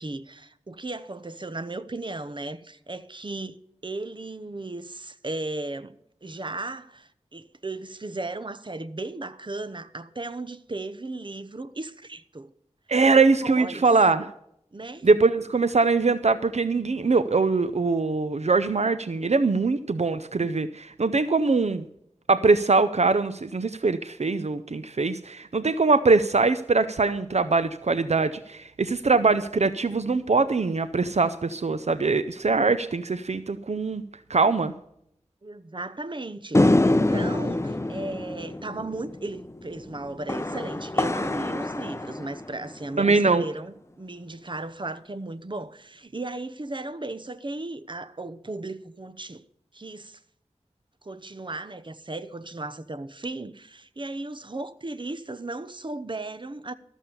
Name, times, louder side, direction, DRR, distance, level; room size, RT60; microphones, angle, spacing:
voice 1, 0.0-3.6 3.8-5.9 6.2-12.5 13.1-13.9 14.7-15.1 35.4-49.4 49.7-50.2 51.0-56.7, right 2 dB, 45° right, 0.9 m, -36 dB
voice 2, 12.9-14.3 15.0-21.8 22.3-34.0 34.3-34.7 43.0-43.4, right 4 dB, 70° right, 0.6 m, -22 dB
sound 1, 36.5-43.0, left 1 dB, 25° left, 0.6 m, -26 dB
13.5 x 7.3 x 6.9 m
wide cardioid pair, 45°, 12 cm